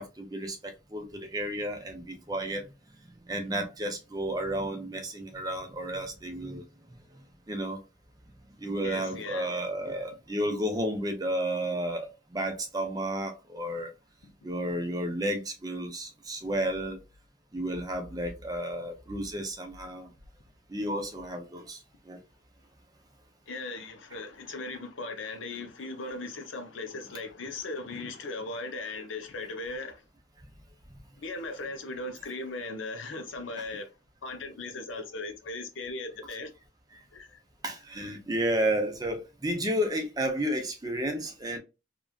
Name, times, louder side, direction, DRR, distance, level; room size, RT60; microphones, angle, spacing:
voice 1, 0.0-2.7 3.3-6.6 6.9-7.0 7.5-7.8 8.6-13.9 14.4-17.0 17.5-20.1 20.7-21.8 22.1-22.2 37.6-41.6, right 1 dB, 20° right, 0.5 m, -32 dB
voice 2, 8.8-9.5 14.2-14.3 23.5-30.0 31.2-33.9 34.2-36.5 37.1-37.4, left 2 dB, 90° left, 0.6 m, -38 dB
2.9 x 2.3 x 2.3 m
head